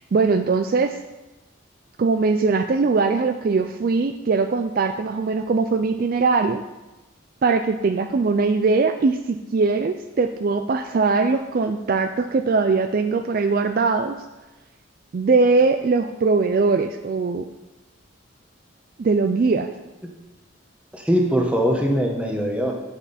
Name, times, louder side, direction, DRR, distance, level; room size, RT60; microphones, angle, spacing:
voice 1, 0.1-1.0 2.0-6.6 7.4-14.2 15.1-17.5 19.0-19.7, right 4 dB, 45° right, 8 dB, 0.3 m, -21 dB
voice 2, 20.9-22.7, equal, 5° right, 0 dB, 1.1 m, -21 dB
8.8 x 8.5 x 4.2 m, 1.1 s
head